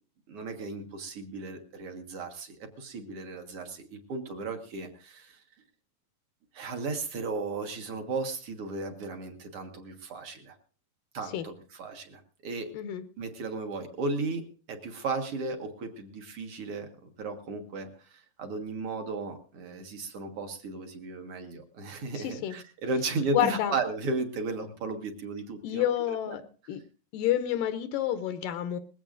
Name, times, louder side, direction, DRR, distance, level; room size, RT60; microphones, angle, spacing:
voice 1, 0.3-5.4 6.5-10.6 11.1-12.7 13.2-26.4, right 3 dB, 50° right, 5 dB, 1.9 m, -35 dB
voice 2, 22.2-22.5 23.3-23.7 25.6-26.4 26.7-26.8 27.1-28.8, left 11 dB, 75° left, 9 dB, 2.3 m, -29 dB
21.0 x 16.0 x 2.5 m, 0.39 s
omnidirectional pair, 4.1 m